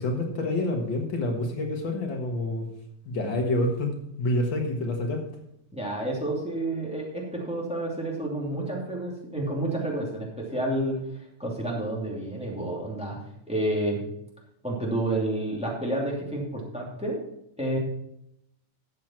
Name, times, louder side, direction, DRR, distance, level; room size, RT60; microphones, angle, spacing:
voice 1, 0.0-2.7 3.1-5.2, left 1 dB, 80° left, 3 dB, 2.3 m, -27 dB
voice 2, 5.7-11.0 11.4-13.2 13.5-14.0 14.6-17.2 17.6-17.8, right 1 dB, 5° right, -2 dB, 2.5 m, -29 dB
13.0 x 7.5 x 4.4 m, 0.79 s
omnidirectional pair, 2.1 m